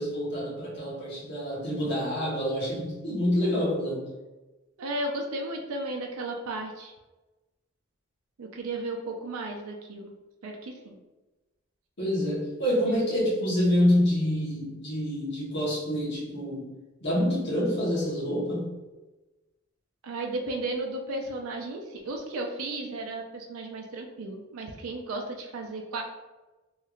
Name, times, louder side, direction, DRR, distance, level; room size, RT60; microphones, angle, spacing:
voice 1, 0.0-4.1 12.0-16.7 17.0-18.8, equal, 50° left, -6 dB, 1.1 m, -27 dB
voice 2, 4.8-6.9 8.4-10.1 10.4-11.0 20.0-26.0, right 2 dB, 85° right, 1 dB, 0.4 m, -34 dB
3.2 x 3.0 x 2.4 m, 1.1 s
head